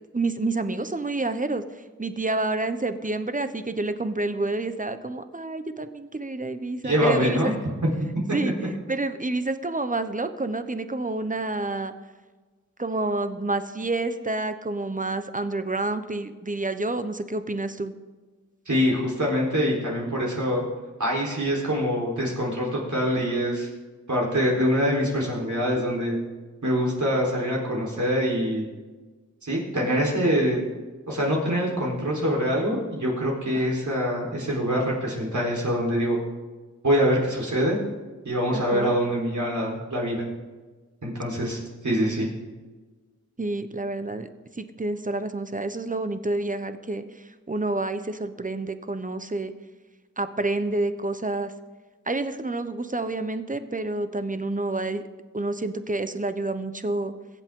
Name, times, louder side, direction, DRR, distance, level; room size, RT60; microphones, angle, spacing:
voice 1, 0.1-7.5 8.3-8.5 8.9-11.9 12.8-17.9 38.5-38.9 43.4-44.3 44.6-49.5 50.2-51.5 52.1-55.0 55.3-57.1, right 2 dB, 25° right, 10 dB, 1.0 m, -28 dB
voice 2, 6.8-7.5 7.8-7.9 18.7-20.6 21.0-23.7 24.1-26.2 26.6-28.7 29.4-30.6 31.1-36.2 36.8-37.8 38.2-40.3 41.0-42.3, equal, 70° right, -3 dB, 4.1 m, -24 dB
23.0 x 8.2 x 3.8 m, 1.3 s
wide cardioid pair, 50°, 30 cm